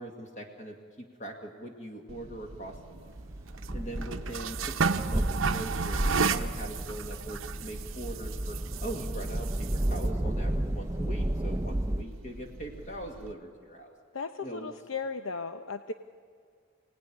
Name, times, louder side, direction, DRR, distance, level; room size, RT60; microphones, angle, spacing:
voice 1, 0.0-3.1 3.7-13.9 14.4-14.7, right 1 dB, 35° left, 2 dB, 2.0 m, -42 dB
sound 1, 2.1-13.3, right 5 dB, 70° right, 0.9 m, -35 dB
sound 2, 3.1-12.0, right 1 dB, 15° right, 0.6 m, -32 dB
voice 2, 14.1-15.9, left 4 dB, 75° left, 8 dB, 0.8 m, -36 dB
27.0 x 18.0 x 10.0 m, 2.1 s
head